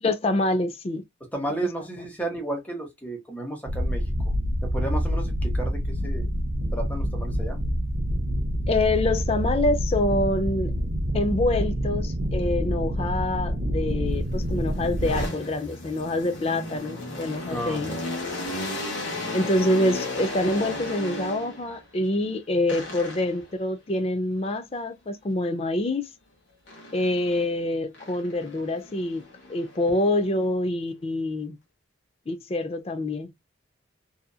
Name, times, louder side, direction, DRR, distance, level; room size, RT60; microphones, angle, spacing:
voice 1, 0.0-1.0 8.7-10.7 11.1-18.0 19.3-26.0 26.9-31.6 32.3-33.3, left 1 dB, 30° left, 0.4 m, -26 dB
voice 2, 1.3-4.3 4.6-6.3 6.7-7.6 17.5-18.0, right 1 dB, 10° left, 0.8 m, -33 dB
sound 1, 3.7-15.3, equal, 45° right, 0.5 m, -27 dB
sound 2, 14.2-21.8 22.7-23.5 26.7-27.5 27.9-30.3, left 2 dB, 70° left, 1.0 m, -35 dB
2.7 x 2.4 x 2.2 m
head